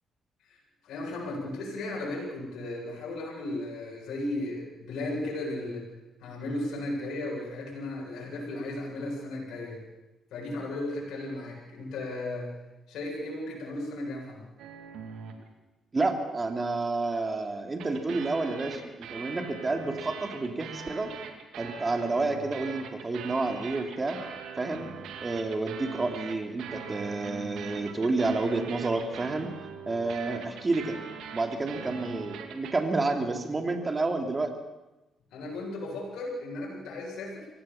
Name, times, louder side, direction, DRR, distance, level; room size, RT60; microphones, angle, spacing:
voice 1, 0.4-5.9 6.2-9.8 10.3-12.5 12.9-14.5 35.3-37.5, left 2 dB, 80° left, -3 dB, 7.9 m, -35 dB
sound 1, 14.6-15.5 17.8-32.8, right 6 dB, 85° right, 2.6 m, -42 dB
voice 2, 15.9-21.1 21.6-24.2 24.6-24.9 25.2-29.5 29.9-31.0 31.3-34.5, right 3 dB, 25° right, 4 dB, 3.1 m, -29 dB
24.0 x 17.0 x 7.3 m, 1.0 s
cardioid pair, 90°, 0 cm